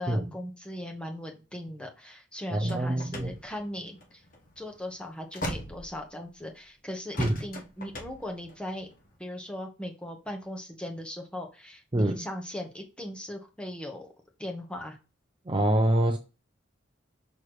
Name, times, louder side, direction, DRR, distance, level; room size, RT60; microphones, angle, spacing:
voice 1, 0.0-4.2 4.6-8.9 9.2-14.1 14.4-15.0, left 1 dB, 5° left, 1.3 m, -39 dB
voice 2, 2.5-3.3 7.2-7.4 11.9-12.3 15.5-16.2, right 1 dB, 25° right, 0.6 m, -25 dB
sound 1, 2.7-6.5 7.1-9.2, left 1 dB, 45° left, 1.3 m, -39 dB
6.3 x 3.5 x 4.7 m
head